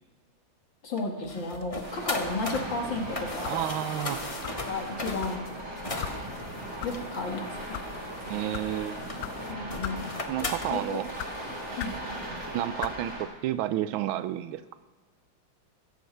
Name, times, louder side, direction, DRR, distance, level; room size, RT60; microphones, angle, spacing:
voice 1, 0.8-3.6 4.6-5.4 6.8-7.8 9.5-10.1 10.7-11.0 11.8-11.9, left 3 dB, 65° left, 1 dB, 2.6 m, -33 dB
sound 1, 1.0-12.5, left 2 dB, 30° left, 0.6 m, -39 dB
sound 2, 1.8-13.2, right 1 dB, 40° right, 3.5 m, -39 dB
sound 3, 2.5-2.8 3.4-3.7 4.4-4.6 5.2-5.4 6.0-6.2 6.8-6.9 7.6-7.9 8.5-8.7 9.2-9.3 9.8-10.0 10.4-10.7 11.2-11.3 11.8-12.0 12.8-13.0, left 11 dB, 80° left, 0.8 m, -37 dB
voice 2, 3.5-4.2 8.3-9.1 10.3-11.1 12.5-14.7, right 13 dB, 85° right, 13 dB, 1.4 m, -31 dB
16.0 x 14.5 x 3.3 m, 1.3 s
omnidirectional pair, 2.2 m